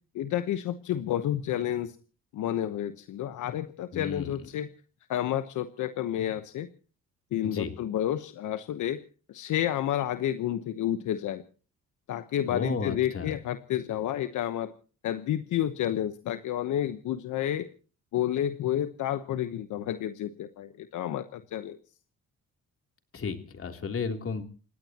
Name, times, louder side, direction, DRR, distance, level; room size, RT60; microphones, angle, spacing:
voice 1, 0.1-1.9 2.3-4.7 5.1-6.7 7.3-9.0 9.3-11.4 12.1-14.7 15.0-17.7 18.1-21.8, left 11 dB, 80° left, 10 dB, 1.1 m, -30 dB
voice 2, 3.9-4.3 7.5-7.7 12.5-13.3 23.1-24.4, left 5 dB, 45° left, 5 dB, 3.4 m, -33 dB
29.0 x 16.5 x 3.0 m, 0.39 s
cardioid pair, 90°, 30 cm